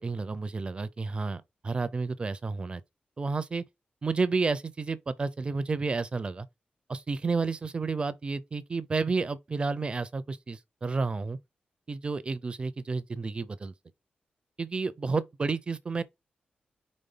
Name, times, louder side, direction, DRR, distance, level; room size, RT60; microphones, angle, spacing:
voice 1, 0.0-2.8 3.2-3.6 4.0-6.5 6.9-11.4 11.9-13.7 14.6-16.0, right 4 dB, 35° right, 0.6 m, -31 dB
5.2 x 3.6 x 5.6 m
wide cardioid pair, 150°, 3 cm